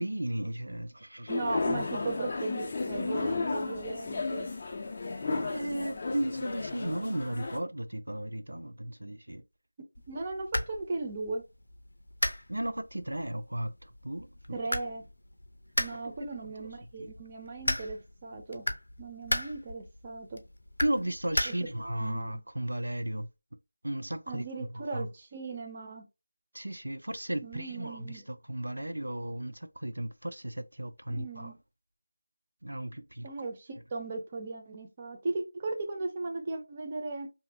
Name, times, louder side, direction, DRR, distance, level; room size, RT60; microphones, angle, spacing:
voice 1, 0.0-1.3 5.3-9.4 12.5-14.6 15.9-16.0 16.4-16.7 17.0-17.1 20.8-23.3 23.8-24.5 24.9-25.1 26.5-31.5 32.6-33.3, right 1 dB, 90° right, 0.4 m, -35 dB
sound 1, 1.3-7.6, left 3 dB, 25° left, 0.4 m, -33 dB
voice 2, 1.3-4.5 10.1-11.4 14.5-15.0 15.8-18.7 19.0-20.4 21.5-21.6 22.0-22.4 24.3-26.0 27.4-28.2 31.1-31.6 33.2-37.3, right 3 dB, 20° right, 0.5 m, -37 dB
sound 2, 9.9-22.0, left 1 dB, 80° left, 0.5 m, -37 dB
2.6 x 2.4 x 2.7 m
figure-of-eight pair, 170°, 0 cm